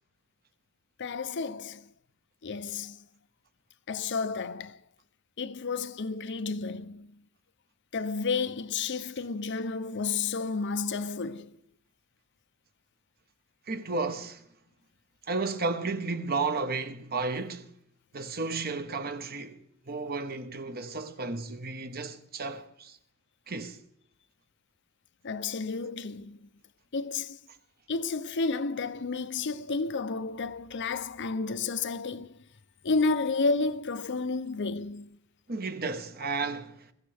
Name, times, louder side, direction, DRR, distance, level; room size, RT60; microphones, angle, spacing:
voice 1, 1.0-1.9 2.4-3.0 3.9-4.8 5.4-7.2 7.9-11.6 25.2-26.5 26.9-27.4 27.9-32.4 32.8-35.2, left 4 dB, 55° left, 0.6 m, -31 dB
voice 2, 13.7-14.4 15.3-17.7 18.1-19.6 19.9-23.0 23.5-23.8 35.5-36.9, right 3 dB, 45° right, 1.2 m, -33 dB
22.0 x 15.5 x 3.5 m
head